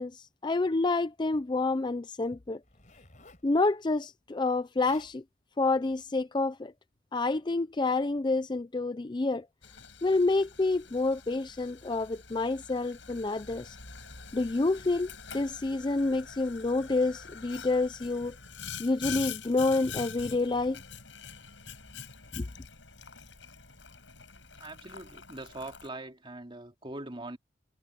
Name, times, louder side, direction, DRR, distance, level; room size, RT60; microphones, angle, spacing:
voice 1, 0.0-2.6 3.4-5.2 5.6-6.7 7.1-9.5 10.0-13.8 14.3-18.4 18.8-20.8 22.4-22.5, left 3 dB, 25° left, 0.4 m, -28 dB
Zipper (clothing), 2.6-3.5 4.5-4.6 4.8-5.2 5.9-6.1, left 3 dB, 40° left, 4.7 m, -56 dB
Boiling, 9.6-25.9, left 6 dB, 75° left, 7.4 m, -45 dB
voice 2, 24.6-27.4, right 2 dB, 25° right, 2.8 m, -42 dB
head